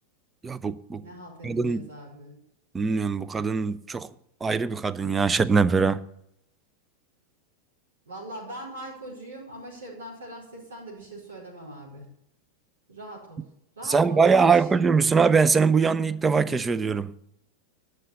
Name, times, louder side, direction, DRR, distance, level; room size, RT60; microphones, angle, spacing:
voice 1, 0.4-1.0 1.4-1.8 2.7-4.1 4.4-6.0 13.8-17.1, right 5 dB, 15° right, 0.6 m, -22 dB
voice 2, 1.0-2.4 8.0-12.1 12.9-13.5 13.7-14.7, right 1 dB, 70° right, 4.8 m, -41 dB
11.5 x 6.6 x 8.1 m
figure-of-eight pair, 90°, 0 cm